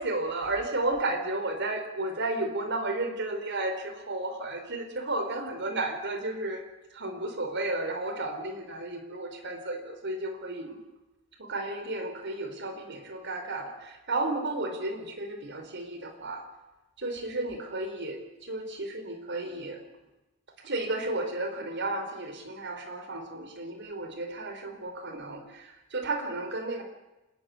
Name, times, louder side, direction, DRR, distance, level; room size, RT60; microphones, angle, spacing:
voice 1, 0.0-6.6 6.9-10.8 11.4-16.4 17.0-19.8 20.6-26.8, right 2 dB, 55° right, 6 dB, 4.5 m, -33 dB
27.5 x 21.0 x 9.7 m, 1.0 s
head